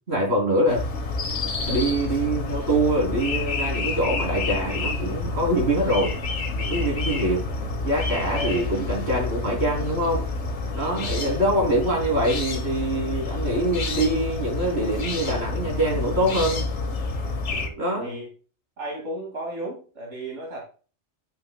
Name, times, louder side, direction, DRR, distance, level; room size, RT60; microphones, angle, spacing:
voice 1, 0.1-0.8 1.7-6.2 6.7-7.5 7.8-10.2 10.7-16.6 17.8-18.2, right 1 dB, 65° right, 3.3 m, -24 dB
sound 1, 0.7-17.7, left 3 dB, 80° left, 1.4 m, -29 dB
voice 2, 6.5-6.9 8.1-8.7 10.9-11.4 17.5-18.3 18.8-20.6, right 1 dB, 90° right, 2.5 m, -35 dB
10.0 x 5.9 x 2.2 m
omnidirectional pair, 1.2 m